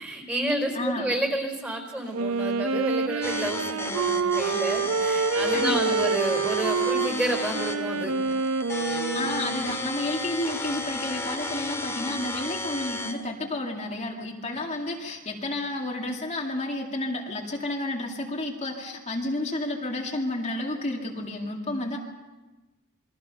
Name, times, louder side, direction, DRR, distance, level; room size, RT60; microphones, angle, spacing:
voice 1, 0.0-8.1, right 1 dB, 5° right, 4 dB, 4.6 m, -30 dB
voice 2, 0.7-1.1 5.5-6.0 8.9-22.0, left 1 dB, 35° left, -1 dB, 2.3 m, -31 dB
Wind instrument woodwind instrument, 2.1-9.9, right 5 dB, 75° right, 0.7 m, -27 dB
sound 1, 3.2-13.2, left 2 dB, 15° left, 2.1 m, -33 dB
28.0 x 22.5 x 5.5 m, 1.2 s
head